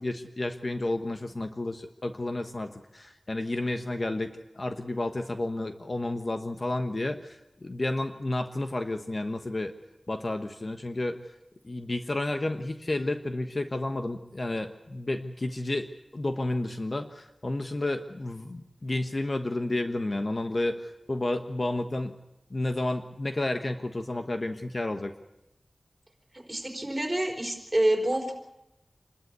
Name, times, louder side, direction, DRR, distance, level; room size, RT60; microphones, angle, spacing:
voice 1, 0.0-9.7 10.1-11.2 11.6-22.2 22.5-25.1, left 2 dB, 45° left, 7 dB, 1.2 m, -31 dB
voice 2, 26.5-28.3, right 1 dB, 25° right, 2 dB, 4.6 m, -27 dB
27.0 x 13.0 x 8.3 m, 0.92 s
wide cardioid pair, 70°, 0 cm